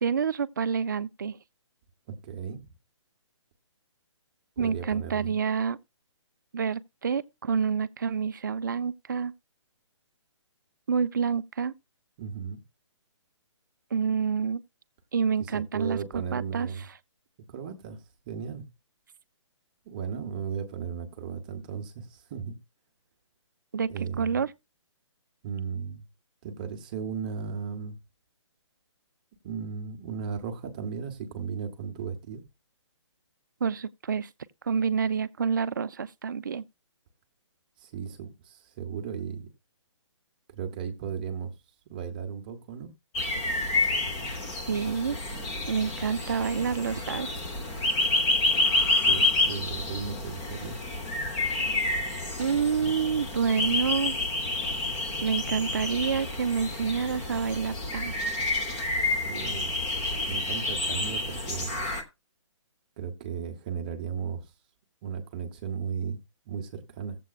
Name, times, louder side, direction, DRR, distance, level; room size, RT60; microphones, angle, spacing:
voice 1, 0.0-1.4 4.6-5.8 6.5-9.3 10.9-11.7 13.9-14.6 15.1-16.7 23.7-23.9 24.2-24.5 33.6-34.3 34.6-36.6 44.7-45.2 45.7-47.3 52.4-54.2 55.2-58.3, right 6 dB, 40° right, 0.5 m, -28 dB
voice 2, 2.1-2.6 4.6-5.4 12.2-12.6 15.4-16.9 17.5-18.6 19.9-22.6 23.9-24.4 25.4-26.1 26.4-28.0 29.4-32.4 37.8-39.5 40.5-41.5 41.9-42.9 49.1-50.8 59.2-59.7 60.2-61.7 63.0-64.4 65.0-66.2 66.5-67.2, right 6 dB, 15° right, 0.8 m, -35 dB
sound 1, 43.1-62.0, left 2 dB, 10° left, 0.6 m, -29 dB
17.5 x 7.6 x 2.3 m
hypercardioid pair, 175°, 16 cm